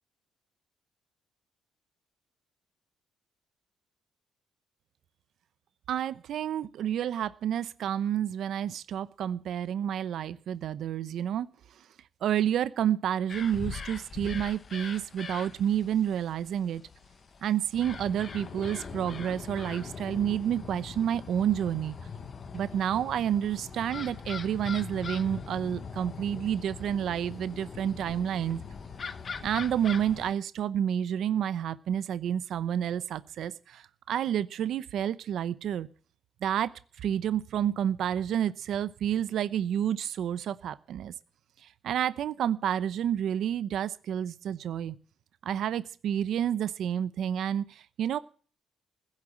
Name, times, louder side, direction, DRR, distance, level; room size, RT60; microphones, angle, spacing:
voice 1, 5.9-11.5 11.8-11.9 12.2-16.8 17.4-22.0 22.5-28.6 29.4-35.9 36.4-36.7 37.0-41.1 41.6-44.9 45.4-48.2, right 9 dB, 60° right, 15 dB, 0.8 m, -29 dB
sound 1, 13.3-30.3, left 5 dB, 35° left, 1.1 m, -41 dB
16.0 x 7.4 x 8.8 m, 0.42 s
cardioid pair, 150°, 0 cm